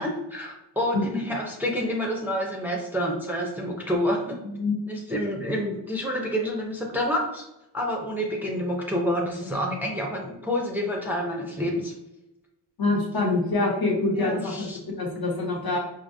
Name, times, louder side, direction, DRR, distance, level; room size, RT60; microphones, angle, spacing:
voice 1, 0.0-4.4 4.9-7.5 7.7-11.9 14.1-14.8, equal, 5° right, 0 dB, 0.5 m, -28 dB
voice 2, 4.4-4.8 12.8-15.8, left 2 dB, 60° left, 0 dB, 1.1 m, -25 dB
5.0 x 2.8 x 2.6 m, 0.91 s
wide cardioid pair, 140°, 42 cm